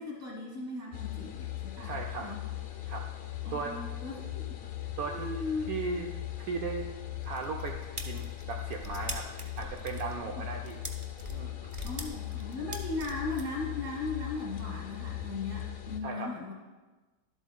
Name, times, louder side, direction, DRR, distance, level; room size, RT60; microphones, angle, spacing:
voice 1, 0.0-1.9 2.2-2.4 3.4-4.4 5.1-5.8 10.4-10.5 11.8-16.5, left 3 dB, 15° right, -4 dB, 2.1 m, -37 dB
sound 1, 0.9-16.0, left 14 dB, 65° left, 0.6 m, -39 dB
voice 2, 1.8-2.3 2.9-3.1 3.5-3.8 5.0-5.3 5.7-6.9 7.2-10.8 11.3-11.7 16.0-16.3, right 4 dB, 70° right, 1 dB, 1.1 m, -37 dB
sound 2, 7.2-13.4, right 1 dB, 40° right, 0.4 m, -42 dB
11.5 x 7.9 x 2.3 m, 1.2 s
omnidirectional pair, 1.7 m